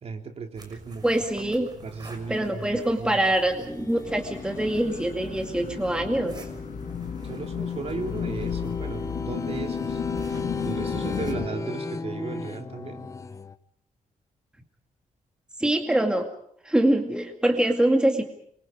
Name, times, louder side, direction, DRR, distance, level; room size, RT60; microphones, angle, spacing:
voice 1, 0.0-1.0 1.8-2.7 3.0-3.2 7.2-10.0 10.6-13.1, right 4 dB, 45° right, 4 dB, 3.3 m, -36 dB
sound 1, 0.5-11.3, right 3 dB, 30° right, 6.1 m, -46 dB
voice 2, 1.0-1.7 2.3-6.5 15.6-16.3 16.6-18.2, right 1 dB, 5° right, 3 dB, 2.3 m, -24 dB
sound 2, 3.5-13.6, left 3 dB, 20° left, 0.9 m, -37 dB
sound 3, 4.1-11.5, left 8 dB, 60° left, 1.7 m, -33 dB
27.0 x 24.5 x 5.2 m, 0.67 s
wide cardioid pair, 150°, 15 cm